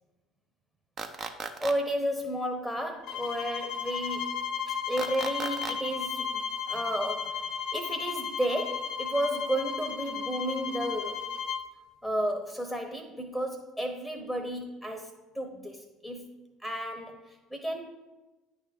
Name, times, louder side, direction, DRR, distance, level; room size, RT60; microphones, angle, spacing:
sound 1, 1.0-1.7 5.0-5.7, right 5 dB, 40° right, 0.7 m, -36 dB
voice 1, 1.6-4.3 4.7-11.2 12.0-16.3 16.6-17.9, right 1 dB, 5° right, 4 dB, 0.9 m, -33 dB
sound 2, 3.0-11.7, left 7 dB, 55° left, 0.9 m, -34 dB
9.4 x 3.4 x 5.1 m, 1.1 s
hypercardioid pair, 65°, 0 cm